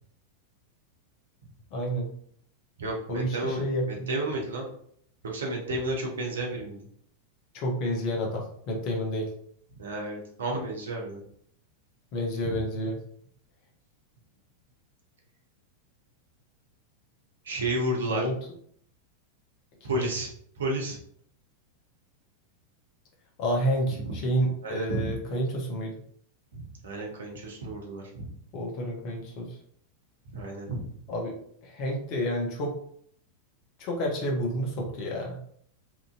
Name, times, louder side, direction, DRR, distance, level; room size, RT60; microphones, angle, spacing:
voice 1, 1.7-2.1 3.1-4.1 7.5-9.3 12.1-13.0 18.1-18.3 19.9-20.1 23.4-25.9 28.5-29.6 31.1-31.4 31.6-32.7 33.8-35.4, equal, 40° left, -1 dB, 0.8 m, -29 dB
voice 2, 2.8-4.7 5.2-6.9 9.8-11.2 12.5-12.6 17.4-18.3 19.8-21.0 24.0-24.1 24.6-25.2 26.5-28.2 30.3-30.9, right 1 dB, 65° right, -1 dB, 0.8 m, -32 dB
2.9 x 2.5 x 2.5 m, 0.65 s
figure-of-eight pair, 90°, 0 cm